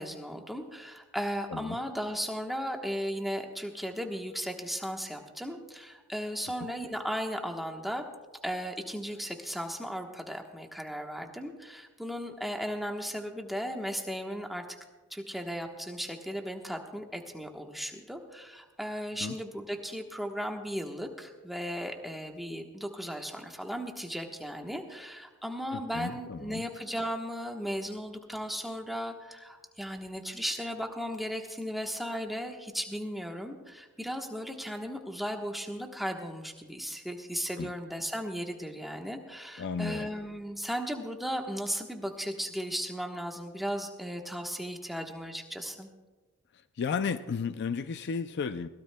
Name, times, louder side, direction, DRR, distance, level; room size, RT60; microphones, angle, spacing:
voice 1, 0.0-8.0 8.4-14.6 15.1-45.9, equal, ahead, 2 dB, 1.1 m, -36 dB
voice 2, 25.7-26.6 37.6-37.7 39.6-40.1 46.8-48.7, left 5 dB, 50° left, 12 dB, 0.4 m, -33 dB
22.0 x 16.5 x 2.2 m, 1.2 s
head